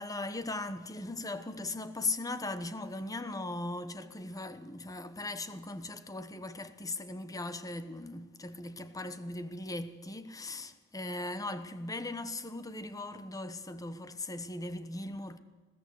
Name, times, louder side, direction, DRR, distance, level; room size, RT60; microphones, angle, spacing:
voice 1, 0.0-15.4, left 2 dB, 15° left, 1.1 m, -38 dB
20.5 x 16.0 x 8.3 m
head